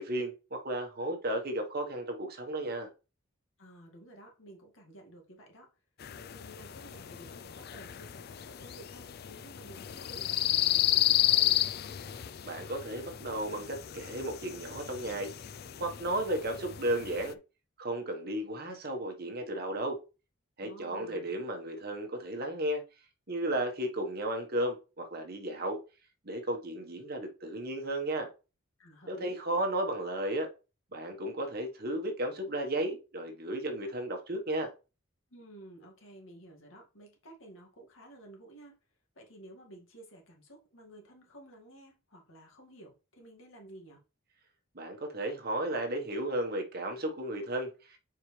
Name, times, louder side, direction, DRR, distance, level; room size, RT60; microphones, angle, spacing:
voice 1, 0.0-2.9 12.4-15.3 15.8-17.4 17.8-20.0 20.6-22.8 23.3-25.8 26.2-28.3 29.0-30.5 30.9-34.7 44.7-48.0, right 1 dB, 50° right, 1.4 m, -34 dB
voice 2, 3.6-5.7 6.1-11.6 20.6-21.3 28.8-29.4 35.3-38.8 39.2-44.0, right 1 dB, 70° left, 2.1 m, -53 dB
sound 1, 6.0-17.3, left 13 dB, 50° left, 0.4 m, -32 dB
7.0 x 4.8 x 3.3 m
head